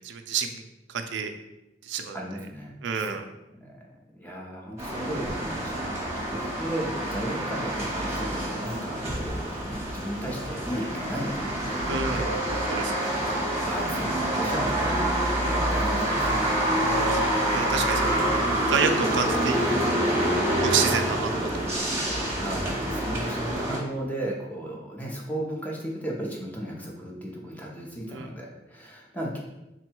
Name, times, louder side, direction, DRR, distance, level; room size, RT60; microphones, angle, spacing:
voice 1, 0.0-1.3 1.8-2.2 2.8-3.2 11.9-12.3 12.7-13.1 16.9-18.3 18.7-20.1 20.6-21.8 28.1-28.3, right 6 dB, 90° right, 6 dB, 0.4 m, -29 dB
voice 2, 2.1-3.2 3.6-3.8 4.1-12.3 13.6-16.5 18.0-18.3 22.4-29.4, right 1 dB, 10° left, -2 dB, 0.7 m, -35 dB
sound 1, 4.8-23.8, right 1 dB, 15° right, 1.0 m, -27 dB
3.6 x 2.2 x 4.4 m, 0.93 s
head